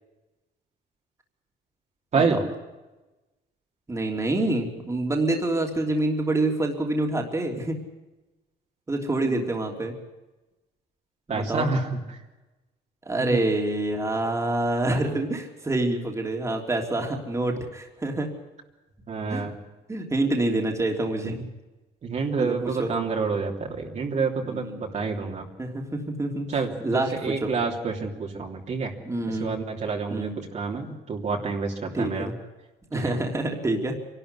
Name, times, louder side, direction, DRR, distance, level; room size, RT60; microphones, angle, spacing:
voice 1, 3.9-7.8 8.9-9.9 11.3-11.7 13.0-18.3 19.3-19.5 19.9-21.5 22.4-22.9 24.4-25.0 25.6-26.5 26.8-27.5 29.0-29.5 30.1-30.3 31.9-32.3 32.9-33.9, right 2 dB, 15° right, 2 dB, 3.2 m, -27 dB
voice 2, 11.3-12.2 13.3-13.4 19.1-19.5 22.0-25.5 26.5-28.9 29.3-32.3 32.9-33.2, right 4 dB, 45° right, 0 dB, 3.2 m, -28 dB
24.5 x 12.5 x 9.8 m, 1.1 s
cardioid pair, 110°, 17 cm